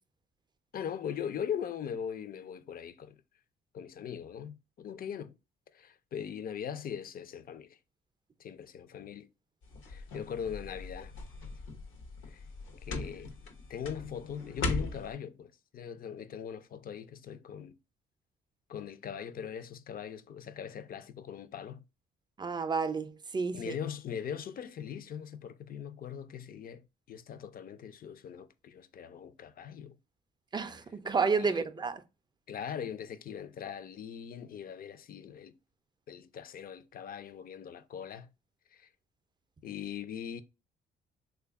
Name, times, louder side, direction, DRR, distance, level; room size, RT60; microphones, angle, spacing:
voice 1, 0.7-3.1 3.7-5.4 5.7-7.8 8.4-9.3 9.9-11.1 12.3-12.4 12.8-13.3 13.7-17.7 18.7-21.8 23.5-26.8 27.1-29.9 31.4-31.6 32.5-35.6 36.1-38.3 38.7-38.9 39.6-40.4, left 8 dB, 45° left, 0.4 m, -40 dB
sound 1, 9.6-15.1, left 3 dB, 80° left, 0.7 m, -39 dB
voice 2, 22.4-23.7 30.5-32.0, right 5 dB, 20° right, 0.4 m, -31 dB
3.3 x 2.3 x 3.4 m
cardioid pair, 90°, 20 cm